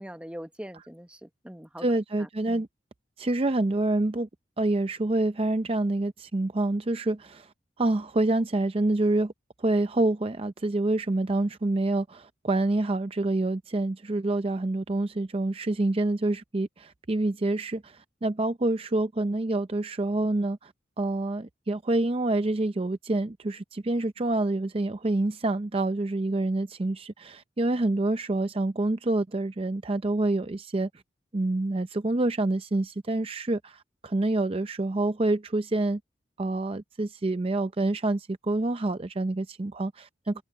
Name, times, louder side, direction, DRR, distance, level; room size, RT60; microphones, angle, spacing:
voice 1, 0.0-1.8 2.2-2.6 40.3-40.4, equal, 5° right, 1.0 m, -42 dB
voice 2, 1.8-2.7 3.2-4.3 4.6-7.5 7.8-9.3 9.6-20.7 21.0-30.9 31.3-36.0 36.4-40.4, right 2 dB, 35° right, 0.5 m, -27 dB
open air
head